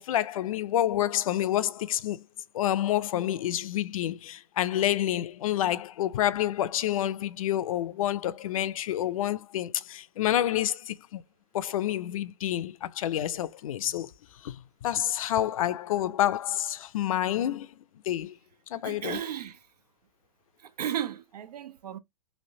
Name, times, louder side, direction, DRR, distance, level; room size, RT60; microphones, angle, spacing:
voice 1, 0.0-2.2 2.5-11.2 11.5-14.1 14.4-17.7 18.1-18.4 18.7-19.2, left 12 dB, 60° left, 0.4 m, -28 dB
voice 2, 18.8-19.6 20.6-22.0, right 10 dB, 90° right, 0.5 m, -34 dB
3.2 x 2.5 x 2.7 m
hypercardioid pair, 145°, 20 cm